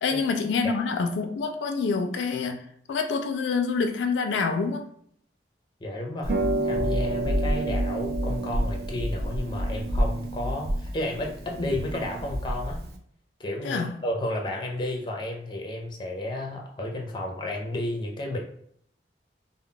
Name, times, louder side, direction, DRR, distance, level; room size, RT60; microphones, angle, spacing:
voice 1, 0.0-2.6 2.9-4.9 13.6-14.0, left 4 dB, 90° left, 0.3 m, -26 dB
voice 2, 5.8-6.3 6.6-12.8 13.4-18.4, left 1 dB, 25° left, 0.5 m, -32 dB
Harp, 6.2-13.0, right 1 dB, 55° right, 0.4 m, -28 dB
2.2 x 2.0 x 3.7 m
head